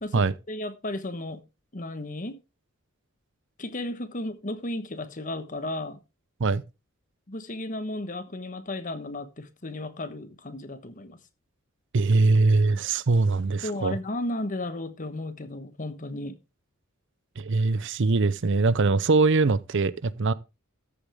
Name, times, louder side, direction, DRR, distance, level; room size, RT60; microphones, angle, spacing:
voice 1, 0.0-1.4 1.7-2.4 3.6-6.0 7.3-11.2 13.6-16.4, left 1 dB, 40° left, 1.2 m, -34 dB
voice 2, 11.9-14.0 17.4-20.3, right 3 dB, 55° right, 0.6 m, -22 dB
13.5 x 8.5 x 3.5 m
head